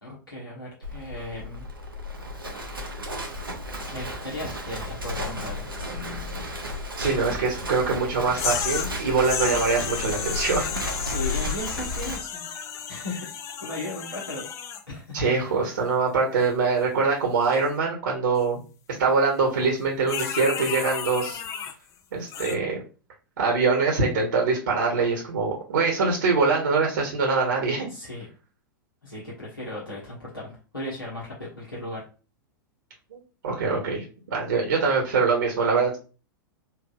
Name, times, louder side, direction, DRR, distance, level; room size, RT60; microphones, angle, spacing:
voice 1, 0.0-1.7 3.9-5.7 9.1-9.3 11.0-12.5 12.9-13.3 13.6-14.5 14.9-15.2 27.9-28.3 29.0-32.0, left 1 dB, 80° left, -6 dB, 1.4 m, -36 dB
Livestock farm animals working animals, 0.8-12.2, left 1 dB, 85° right, 0.8 m, -33 dB
voice 2, 7.0-10.7 15.1-18.6 19.0-21.4 22.1-22.8 23.4-27.9 33.1-33.2 33.4-36.0, right 4 dB, 65° right, -1 dB, 1.2 m, -23 dB
sound 1, 8.4-8.9 9.2-14.8 20.1-21.7 22.3-22.6, left 8 dB, 25° left, 0.4 m, -32 dB
4.5 x 2.6 x 2.4 m, 0.34 s
figure-of-eight pair, 95°, 11 cm